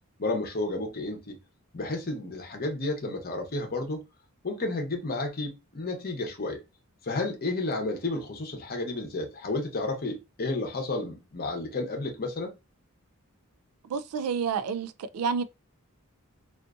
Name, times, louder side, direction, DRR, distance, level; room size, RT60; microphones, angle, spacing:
voice 1, 0.2-1.4 1.7-4.0 4.4-6.6 7.0-12.5, left 2 dB, 45° left, 0.8 m, -31 dB
voice 2, 13.8-15.4, right 6 dB, 70° right, 0.3 m, -29 dB
2.5 x 2.5 x 2.3 m
head